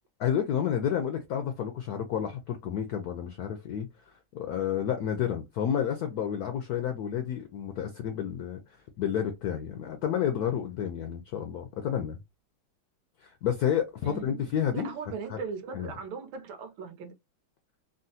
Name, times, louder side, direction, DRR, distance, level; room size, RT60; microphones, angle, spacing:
voice 1, 0.2-3.9 4.3-8.6 9.0-12.2 13.2-14.9 15.3-15.4 15.7-15.9, left 9 dB, 80° left, 0.8 m, -30 dB
voice 2, 14.0-17.1, right 5 dB, 80° right, 1.5 m, -39 dB
3.9 x 2.1 x 2.6 m
omnidirectional pair, 2.2 m